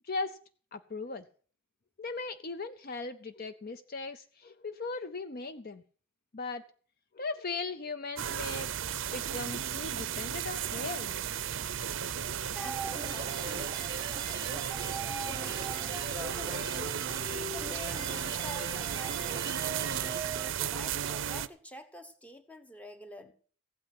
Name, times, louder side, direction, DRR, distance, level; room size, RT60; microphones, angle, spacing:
voice 1, 0.0-0.4 0.7-1.3 2.0-5.8 6.3-6.6 7.1-11.2, left 3 dB, 45° left, 11 dB, 0.5 m, -38 dB
sound 1, 8.2-21.5, right 9 dB, 55° right, 0.5 m, -35 dB
voice 2, 12.4-13.9 14.4-16.9 17.3-20.0 20.5-23.3, left 1 dB, 5° left, 8 dB, 1.0 m, -47 dB
sound 2, 12.6-20.5, right 3 dB, 20° right, 0.9 m, -40 dB
15.5 x 8.8 x 5.9 m, 0.43 s
head